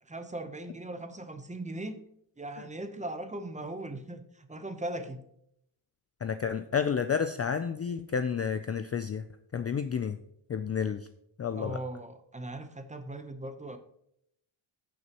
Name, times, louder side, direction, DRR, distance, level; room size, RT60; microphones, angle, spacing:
voice 1, 0.0-2.0 2.4-5.2 11.5-13.8, right 1 dB, 15° right, 9 dB, 0.8 m, -39 dB
voice 2, 6.2-9.2 9.5-10.2 10.5-11.0 11.4-11.8, left 7 dB, 30° left, 10 dB, 0.4 m, -30 dB
15.5 x 6.3 x 3.0 m, 0.75 s
cardioid pair, 115°, 50 cm